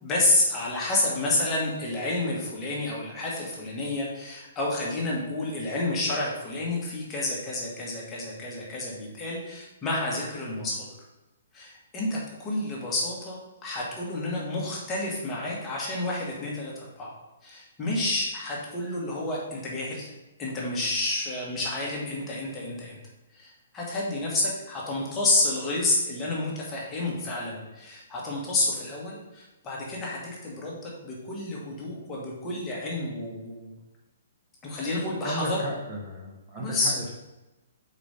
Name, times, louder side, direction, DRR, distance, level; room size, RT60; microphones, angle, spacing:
voice 1, 0.0-10.9 11.5-17.1 17.4-20.1 20.4-23.0 23.3-33.7 34.6-35.6 36.6-36.9, left 2 dB, 15° left, -4 dB, 1.3 m, -29 dB
voice 2, 35.2-37.1, equal, 20° right, -4 dB, 1.0 m, -34 dB
4.9 x 4.2 x 5.1 m, 1.1 s
hypercardioid pair, 170°, 0 cm